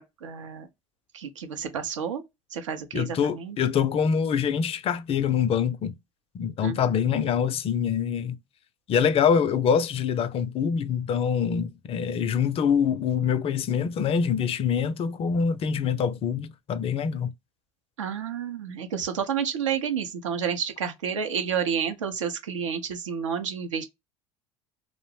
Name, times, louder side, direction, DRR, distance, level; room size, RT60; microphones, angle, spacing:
voice 1, 0.2-0.7 1.1-2.2 2.5-3.6 6.6-7.0 18.0-23.8, right 7 dB, 85° right, 0.6 m, -30 dB
voice 2, 2.9-5.9 6.3-8.4 8.9-17.3, left 7 dB, 40° left, 0.4 m, -25 dB
2.5 x 2.0 x 3.2 m
hypercardioid pair, 70°, 16 cm